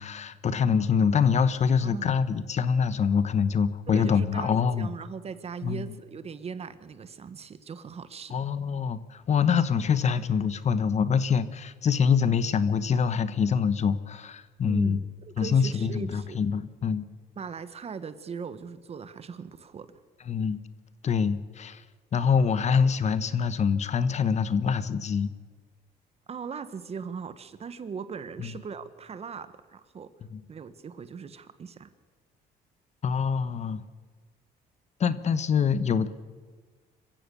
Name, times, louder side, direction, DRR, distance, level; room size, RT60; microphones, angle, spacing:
voice 1, 0.0-4.9 5.6-5.8 8.3-15.0 15.4-17.1 20.3-20.6 21.0-21.8 22.1-25.3 28.4-28.5 30.3-30.4 33.0-33.8 35.0-36.1, left 6 dB, 40° left, 14 dB, 1.2 m, -25 dB
voice 2, 1.8-2.2 3.9-8.4 14.6-16.4 17.4-19.9 26.3-30.1 30.5-31.9, right 6 dB, 35° right, 13 dB, 1.5 m, -39 dB
26.5 x 15.5 x 7.0 m, 1.5 s
cardioid pair, 110°, 17 cm